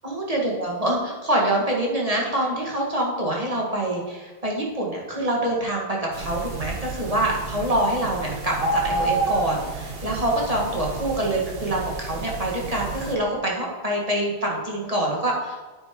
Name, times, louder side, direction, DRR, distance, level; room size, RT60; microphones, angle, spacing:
voice 1, 0.0-15.6, right 1 dB, 35° right, -3 dB, 1.7 m, -25 dB
sound 1, 6.1-13.1, right 2 dB, 65° right, 1.3 m, -30 dB
9.3 x 9.3 x 3.7 m, 1.3 s
omnidirectional pair, 1.1 m